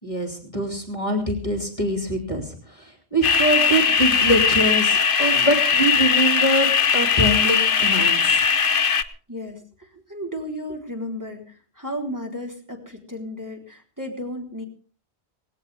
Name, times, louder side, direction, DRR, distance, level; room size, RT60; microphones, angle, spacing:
voice 1, 0.0-8.4, right 1 dB, 30° left, 4 dB, 2.8 m, -24 dB
sound 1, 3.2-9.0, left 6 dB, 55° left, 1.1 m, -19 dB
voice 2, 9.3-14.6, equal, 15° right, 1 dB, 3.9 m, -34 dB
19.0 x 17.0 x 3.5 m, 0.39 s
omnidirectional pair, 1.1 m